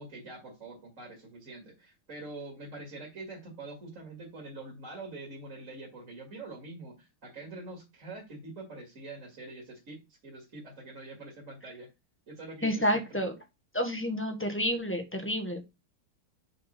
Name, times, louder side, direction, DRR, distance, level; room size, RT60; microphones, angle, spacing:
voice 1, 0.0-11.9 12.3-13.2, right 2 dB, 40° right, -2 dB, 2.5 m, -45 dB
voice 2, 12.6-13.3 13.7-15.7, equal, 10° left, 4 dB, 1.0 m, -29 dB
6.4 x 3.8 x 5.9 m, 0.25 s
omnidirectional pair, 2.3 m